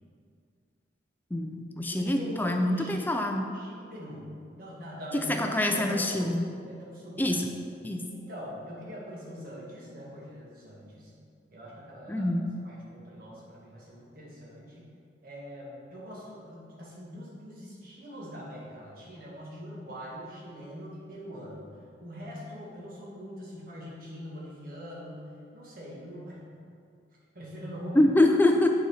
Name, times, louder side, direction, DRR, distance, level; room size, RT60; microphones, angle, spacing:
voice 1, 1.3-3.4 5.4-6.4 7.2-7.5 7.8-8.0 12.1-12.5 27.9-28.7, left 1 dB, 10° left, 3 dB, 0.4 m, -25 dB
voice 2, 1.9-3.2 3.5-7.4 8.1-11.1 11.5-12.4 12.6-14.9 15.2-21.7 22.0-26.6 27.3-28.1, equal, 50° right, -5 dB, 1.8 m, -43 dB
7.5 x 4.2 x 5.6 m, 2.3 s
head